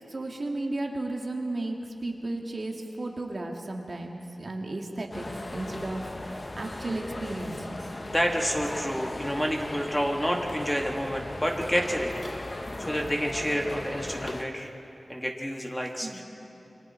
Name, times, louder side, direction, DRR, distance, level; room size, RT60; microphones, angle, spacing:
voice 1, 0.1-6.1 6.5-7.9 16.0-16.2, right 2 dB, 50° right, 1 dB, 2.0 m, -34 dB
sound 1, 5.1-14.4, left 1 dB, 35° left, 1.1 m, -37 dB
voice 2, 8.1-12.1 12.8-14.7 15.1-16.2, equal, 10° left, 1 dB, 2.2 m, -29 dB
28.5 x 24.5 x 4.5 m, 3.0 s
wide cardioid pair, 100°, 0 cm